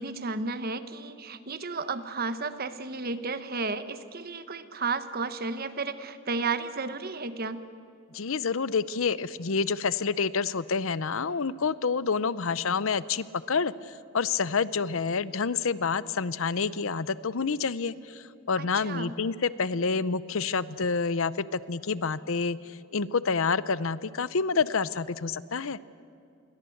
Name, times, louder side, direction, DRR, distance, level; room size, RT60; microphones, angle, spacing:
voice 1, 0.0-7.6 18.6-19.2, right 4 dB, 45° right, 11 dB, 1.2 m, -33 dB
voice 2, 8.1-25.8, left 5 dB, 65° left, 17 dB, 0.7 m, -28 dB
29.0 x 22.5 x 7.9 m, 2.4 s
head